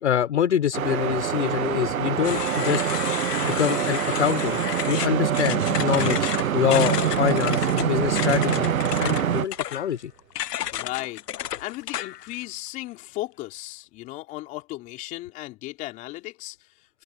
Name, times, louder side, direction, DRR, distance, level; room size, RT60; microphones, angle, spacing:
voice 1, 0.0-2.8 3.4-10.1, left 10 dB, 45° left, 1.0 m, -25 dB
sound 1, 0.7-9.5, right 9 dB, 55° right, 1.2 m, -25 dB
sound 2, 2.2-12.4, left 12 dB, 75° left, 0.6 m, -32 dB
sound 3, 5.4-10.0, right 9 dB, 85° right, 0.9 m, -36 dB
voice 2, 10.7-11.2 11.6-17.0, left 18 dB, 15° left, 3.4 m, -36 dB
open air
hypercardioid pair, 160°, 48 cm